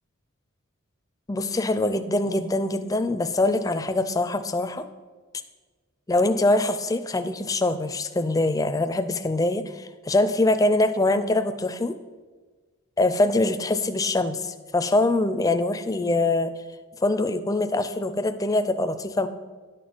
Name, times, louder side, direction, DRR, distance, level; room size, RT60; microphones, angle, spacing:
voice 1, 1.3-4.8 6.1-12.0 13.0-16.5 17.0-19.3, left 2 dB, 15° left, 9 dB, 0.4 m, -23 dB
10.5 x 4.2 x 7.7 m, 1.4 s
head